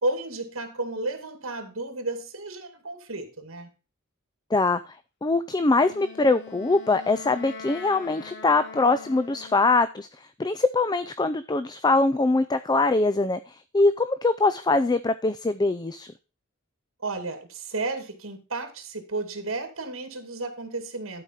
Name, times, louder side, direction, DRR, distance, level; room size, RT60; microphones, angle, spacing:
voice 1, 0.0-3.7 17.0-21.2, right 2 dB, 70° right, 7 dB, 2.2 m, -32 dB
voice 2, 4.5-4.9 5.2-10.1 10.4-16.1, left 3 dB, 20° left, 12 dB, 0.4 m, -23 dB
Wind instrument woodwind instrument, 5.7-10.0, left 4 dB, 55° left, 1.3 m, -43 dB
12.0 x 4.8 x 5.7 m, 0.32 s
head